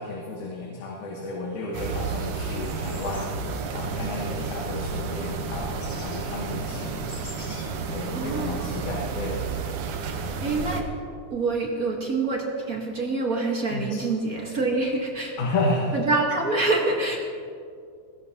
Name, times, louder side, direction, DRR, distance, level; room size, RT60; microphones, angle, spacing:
voice 1, 0.0-7.1 7.9-9.7 13.7-14.0 14.7-14.8 15.4-16.0, left 2 dB, 75° left, -2 dB, 2.7 m, -32 dB
sound 1, 1.6-1.7 1.9-8.2, left 1 dB, 30° left, 3.8 m, -48 dB
sound 2, 1.7-10.8, right 5 dB, 90° right, 2.5 m, -31 dB
voice 2, 8.1-8.7 10.4-10.9 11.3-15.3 15.9-17.2, right 3 dB, 50° right, 0 dB, 1.1 m, -26 dB
18.5 x 16.5 x 2.9 m, 2.3 s
omnidirectional pair, 3.5 m